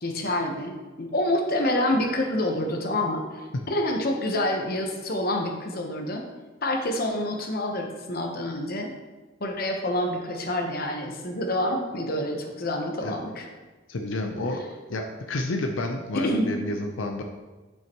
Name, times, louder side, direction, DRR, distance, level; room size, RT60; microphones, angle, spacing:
voice 1, 0.0-6.2 6.6-8.9 9.4-13.5 16.1-16.5, left 1 dB, 50° left, 3 dB, 1.0 m, -27 dB
voice 2, 13.9-14.6 14.9-17.2, left 2 dB, 85° left, 3 dB, 0.7 m, -30 dB
10.5 x 5.6 x 3.0 m, 1.2 s
head